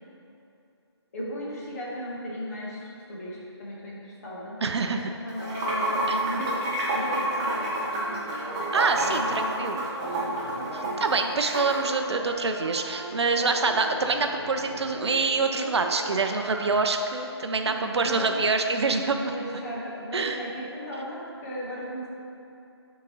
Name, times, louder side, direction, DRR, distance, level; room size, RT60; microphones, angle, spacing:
voice 1, 1.1-4.6 4.9-8.6 8.9-11.1 17.6-18.4 19.1-22.1, equal, 35° left, -6 dB, 1.2 m, -37 dB
voice 2, 4.6-5.0 6.1-6.2 8.7-9.8 10.7-19.3 20.1-20.4, right 4 dB, 70° right, 5 dB, 0.5 m, -26 dB
Water / Sink (filling or washing), 5.3-11.8, right 1 dB, 15° right, 0.6 m, -29 dB
sound 1, 7.9-16.9, right 2 dB, 40° right, 1.3 m, -39 dB
8.4 x 3.7 x 3.1 m, 2.7 s
figure-of-eight pair, 160°, 15 cm